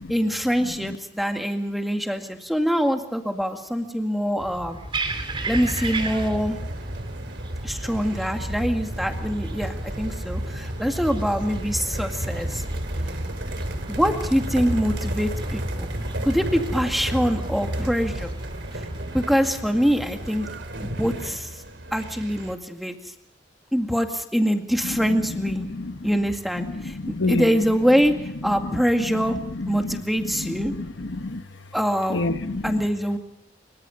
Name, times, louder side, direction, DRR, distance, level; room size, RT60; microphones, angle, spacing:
voice 1, 0.1-4.8 5.5-6.6 7.6-12.6 13.9-15.9 16.2-18.3 19.1-20.5 20.8-21.5 21.9-22.9 23.7-25.6 26.0-27.0 27.3-28.1 28.4-29.4 29.7-30.7 31.7-32.2 32.6-33.2, equal, ahead, 4 dB, 2.1 m, -24 dB
voice 2, 0.6-1.0 24.8-26.3 26.5-28.0 28.5-31.4 32.1-32.9, left 2 dB, 80° left, 9 dB, 1.3 m, -30 dB
sound 1, 4.4-20.4, right 1 dB, 30° right, 3.2 m, -34 dB
sound 2, 5.5-22.5, right 1 dB, 75° right, 2.9 m, -33 dB
25.5 x 23.5 x 5.3 m, 0.79 s
head